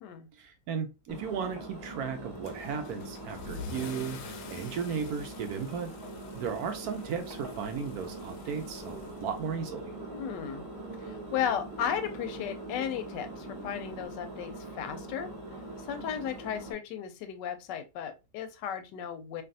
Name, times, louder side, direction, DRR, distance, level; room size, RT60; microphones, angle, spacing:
voice 1, 0.4-5.9 6.3-9.9, right 6 dB, 70° right, 1.0 m, -35 dB
Engine, 1.1-16.7, right 1 dB, 20° right, 0.7 m, -43 dB
Car / Engine starting / Accelerating revving vroom, 2.4-9.8, left 5 dB, 70° left, 0.9 m, -47 dB
sound 1, 8.8-14.1, right 3 dB, 35° right, 1.3 m, -49 dB
voice 2, 10.1-10.6 11.0-15.3 15.8-19.4, left 9 dB, 90° left, 1.2 m, -35 dB
3.3 x 2.6 x 2.5 m
omnidirectional pair, 1.8 m